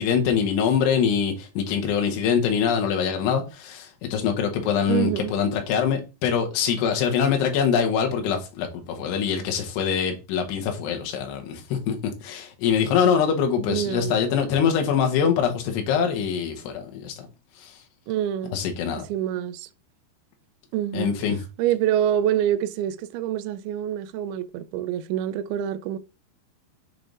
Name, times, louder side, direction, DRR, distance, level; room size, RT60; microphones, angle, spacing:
voice 1, 0.0-12.0 12.2-17.3 17.6-17.7 18.5-19.0 20.9-21.4, left 7 dB, 75° left, 3.1 m, -24 dB
voice 2, 4.9-5.3 13.7-14.2 18.1-18.6 19.1-19.7 20.7-21.2 21.6-26.0, right 11 dB, 85° right, 2.2 m, -26 dB
7.5 x 3.4 x 3.8 m
omnidirectional pair, 4.9 m